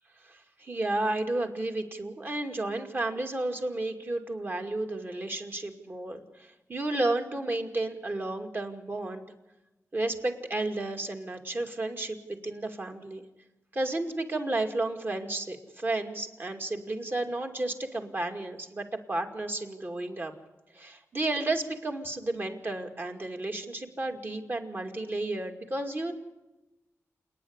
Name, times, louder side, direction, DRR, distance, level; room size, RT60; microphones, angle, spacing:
voice 1, 0.2-9.2 9.9-13.2 13.7-20.3 20.7-26.1, right 2 dB, 40° right, 4 dB, 2.3 m, -32 dB
28.0 x 9.9 x 9.7 m, 1.0 s
wide cardioid pair, 80°, 5 cm